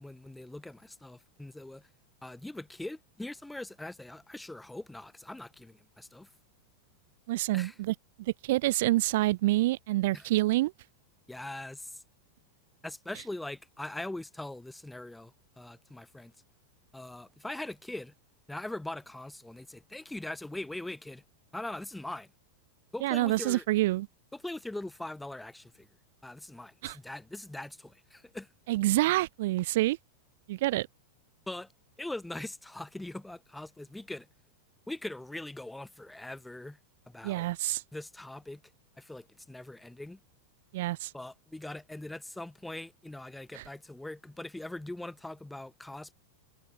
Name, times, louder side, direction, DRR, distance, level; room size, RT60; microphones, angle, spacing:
voice 1, 0.0-1.9 2.2-6.3 7.5-7.7 10.1-10.3 11.3-12.0 12.8-16.3 16.9-18.1 18.5-21.2 21.5-22.3 22.9-23.6 24.3-25.9 26.2-28.5 31.5-31.7 32.0-34.3 34.9-36.8 37.1-37.5 37.9-38.6 39.0-40.2 41.1-46.1, left 1 dB, 5° left, 1.7 m, -41 dB
voice 2, 7.3-10.7 23.0-24.1 26.8-27.0 28.7-30.0 30.5-30.9 37.2-37.8 40.7-41.1 43.5-43.7, right 17 dB, 55° right, 0.5 m, -27 dB
figure-of-eight pair, 90°, 0 cm